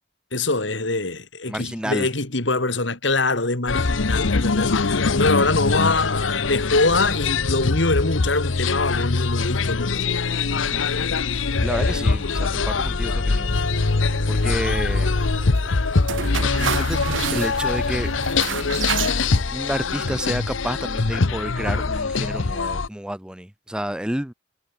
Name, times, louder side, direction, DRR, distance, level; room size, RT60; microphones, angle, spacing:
voice 1, 0.3-10.1, left 2 dB, 65° left, 2.9 m, -24 dB
voice 2, 1.5-2.1 10.5-10.9 11.6-13.6 14.3-15.1 16.3-17.0 17.3-18.1 19.5-24.3, equal, 5° right, 0.6 m, -30 dB
sound 1, 3.7-22.9, left 4 dB, 85° left, 0.9 m, -23 dB
sound 2, 13.5-19.4, right 7 dB, 75° right, 0.9 m, -31 dB
head